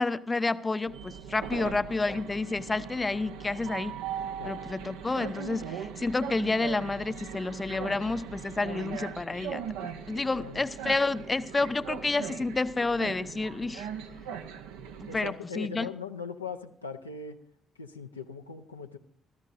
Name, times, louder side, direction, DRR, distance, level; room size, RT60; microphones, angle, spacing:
voice 1, 0.0-4.0 4.4-13.9 15.0-15.9, left 3 dB, 25° left, 14 dB, 0.6 m, -30 dB
Train, 0.9-15.3, right 8 dB, 70° right, 0.7 m, -40 dB
voice 2, 15.1-17.4 17.8-19.0, left 5 dB, 85° left, 4 dB, 0.5 m, -40 dB
26.5 x 13.5 x 2.6 m, 0.64 s
figure-of-eight pair, 45°, 0 cm